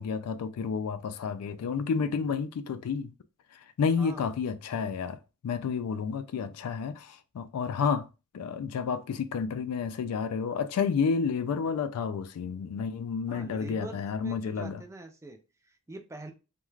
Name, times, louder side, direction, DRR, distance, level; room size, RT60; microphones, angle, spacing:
voice 1, 0.0-3.1 3.5-8.1 8.3-14.8, left 6 dB, 75° left, 0.3 m, -30 dB
voice 2, 4.0-4.3 13.3-16.3, right 2 dB, 15° right, 0.3 m, -44 dB
2.4 x 2.2 x 3.1 m
head